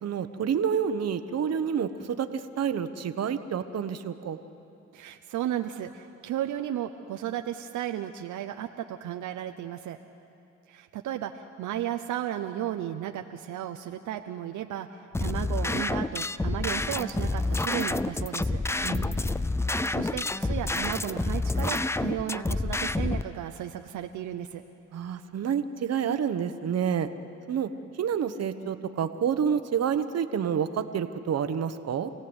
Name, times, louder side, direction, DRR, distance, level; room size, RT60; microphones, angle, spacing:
voice 1, 0.0-4.4 18.8-19.4 24.9-27.1 27.5-27.7 28.0-32.1, right 8 dB, 55° right, 10 dB, 1.2 m, -29 dB
voice 2, 4.9-10.0 10.7-18.6 19.9-24.6, right 11 dB, 80° right, 6 dB, 0.9 m, -34 dB
sound 1, 15.1-23.2, left 2 dB, 10° left, 0.4 m, -28 dB
28.0 x 17.0 x 8.1 m, 2.7 s
cardioid pair, 90°, 30 cm